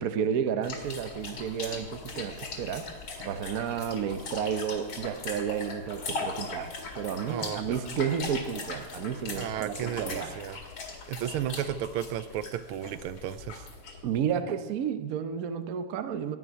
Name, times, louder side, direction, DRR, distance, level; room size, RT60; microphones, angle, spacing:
voice 1, 0.0-2.9 3.2-10.3 14.0-16.4, right 8 dB, 60° right, 10 dB, 0.9 m, -31 dB
sound 1, 0.6-14.2, left 4 dB, 65° left, 2.8 m, -40 dB
voice 2, 7.2-7.8 9.4-10.6 11.1-13.7, right 11 dB, 80° right, 14 dB, 1.5 m, -34 dB
16.5 x 6.1 x 9.8 m, 1.2 s
omnidirectional pair, 2.4 m